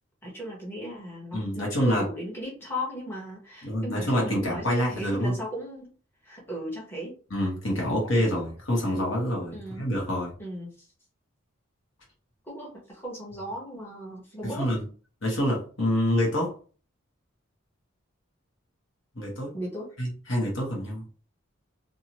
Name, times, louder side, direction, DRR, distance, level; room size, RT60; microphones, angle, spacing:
voice 1, 0.2-5.9 6.2-7.1 9.5-9.9 10.4-10.7 12.5-14.7 19.5-19.9, equal, 10° left, -5 dB, 1.0 m, -36 dB
voice 2, 1.3-2.0 3.6-5.4 7.3-10.3 14.5-14.9 15.2-16.5 19.2-19.5 20.0-21.0, equal, 70° left, -2 dB, 1.3 m, -27 dB
2.7 x 2.6 x 2.9 m, 0.38 s
head